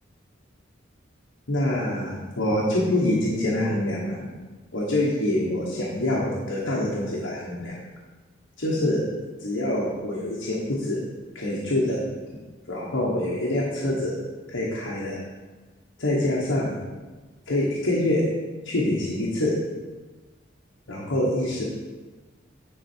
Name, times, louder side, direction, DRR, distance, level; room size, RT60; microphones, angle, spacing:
voice 1, 1.5-4.2 4.7-7.8 8.6-9.0 9.4-11.0 11.3-12.0 12.7-14.1 14.5-15.2 16.0-16.8 17.5-18.2 18.6-19.5 20.9-21.6, left 1 dB, 85° left, -5 dB, 1.3 m, -25 dB
9.9 x 4.1 x 4.5 m, 1.3 s
head